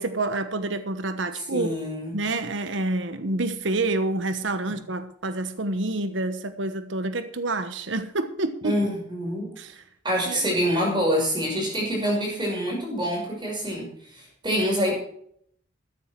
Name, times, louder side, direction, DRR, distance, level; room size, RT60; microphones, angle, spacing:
voice 1, 0.0-1.7 2.1-8.7 9.6-9.7 10.3-10.4, right 2 dB, 70° right, 10 dB, 1.2 m, -28 dB
voice 2, 1.3-2.2 4.7-4.8 8.6-9.5 10.0-15.0, equal, 25° right, -1 dB, 6.1 m, -26 dB
14.0 x 10.5 x 4.7 m, 0.66 s
head